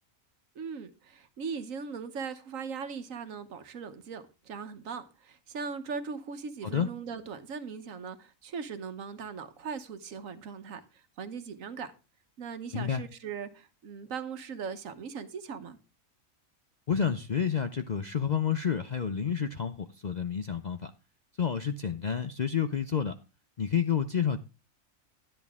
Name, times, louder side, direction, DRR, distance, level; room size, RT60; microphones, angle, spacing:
voice 1, 0.5-11.9 12.4-15.8, right 5 dB, 75° right, 1.4 m, -39 dB
voice 2, 12.7-13.0 16.9-20.9 21.4-23.1 23.6-24.4, left 7 dB, 50° left, 0.5 m, -29 dB
11.5 x 10.5 x 3.6 m
omnidirectional pair, 1.4 m